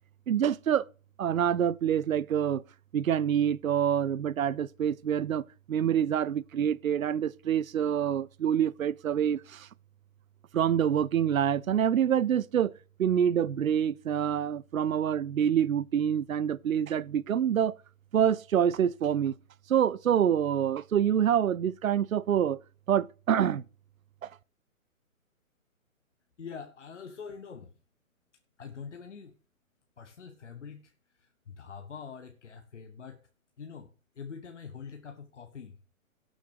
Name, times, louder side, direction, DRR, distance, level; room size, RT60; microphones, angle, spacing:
voice 1, 0.3-0.9 1.2-2.6 2.9-5.4 5.7-9.7 10.5-12.7 13.0-17.7 18.1-19.3 19.7-22.6 22.9-23.6 24.2-24.3, right 9 dB, 75° right, 0.5 m, -26 dB
voice 2, 26.4-27.7 28.6-29.3 30.0-33.2 33.6-33.9 34.2-35.8, left 6 dB, 60° left, 1.1 m, -44 dB
17.5 x 6.3 x 3.3 m
figure-of-eight pair, 125°, 42 cm